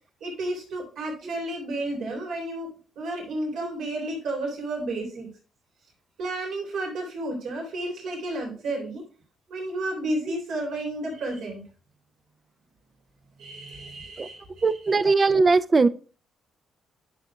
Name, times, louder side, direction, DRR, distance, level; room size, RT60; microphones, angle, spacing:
voice 1, 0.2-2.7 3.0-5.3 6.2-9.0 9.5-11.6 13.4-15.3, right 1 dB, 80° right, 3.4 m, -32 dB
voice 2, 14.6-15.9, right 4 dB, 30° right, 0.5 m, -20 dB
10.5 x 6.5 x 2.4 m
cardioid pair, 90°, 0 cm